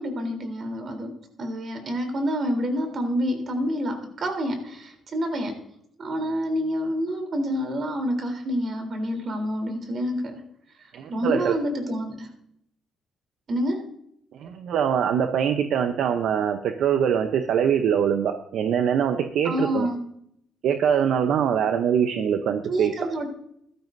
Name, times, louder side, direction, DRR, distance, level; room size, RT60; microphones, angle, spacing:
voice 1, 0.0-5.5 6.0-10.4 10.8-12.3 13.5-13.8 19.4-20.0 22.7-23.3, equal, 50° right, 4 dB, 3.5 m, -28 dB
voice 2, 10.9-11.6 14.3-19.9 20.6-23.1, right 8 dB, 75° right, 7 dB, 0.8 m, -23 dB
15.5 x 12.5 x 2.7 m, 0.72 s
cardioid pair, 90°, 0 cm